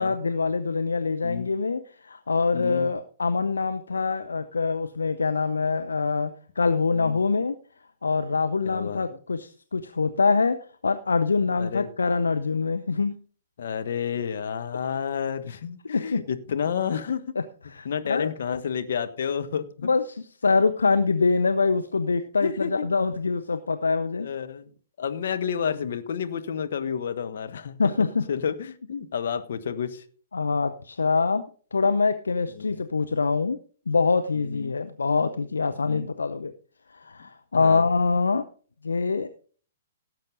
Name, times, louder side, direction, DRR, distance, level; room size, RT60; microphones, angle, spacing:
voice 1, 0.0-6.3 6.6-7.6 8.0-10.6 10.8-13.1 15.9-16.2 17.7-18.3 19.8-20.2 20.4-24.3 27.8-28.2 30.3-31.4 31.7-33.6 33.9-36.5 36.9-38.4 38.8-39.3, left 4 dB, 70° left, 9 dB, 0.7 m, -24 dB
voice 2, 2.5-2.9 6.9-7.2 8.6-9.2 11.6-11.9 13.6-17.2 17.8-19.9 22.4-22.9 24.1-24.7 25.0-30.0 32.5-32.8 34.4-34.7 35.9-36.1 37.5-37.9, left 7 dB, 55° left, 8 dB, 1.2 m, -30 dB
17.5 x 7.6 x 3.9 m, 0.43 s
figure-of-eight pair, 115°, 0 cm